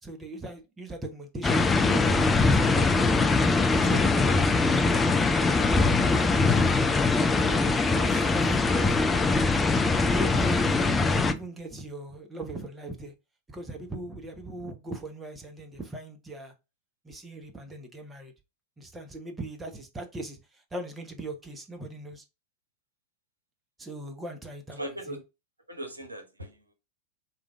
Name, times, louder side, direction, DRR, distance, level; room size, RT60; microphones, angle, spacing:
voice 1, 0.0-3.1 3.7-5.3 6.1-6.5 7.2-9.0 10.1-13.1 13.5-16.5 17.0-18.3 18.8-22.2 23.8-25.2, right 2 dB, 10° right, 0.8 m, -39 dB
sound 1, 1.4-11.3, left 3 dB, 15° left, 0.4 m, -22 dB
voice 2, 24.8-25.2 25.7-26.7, right 1 dB, 80° right, 0.9 m, -38 dB
4.8 x 2.5 x 3.4 m
figure-of-eight pair, 90°, 0 cm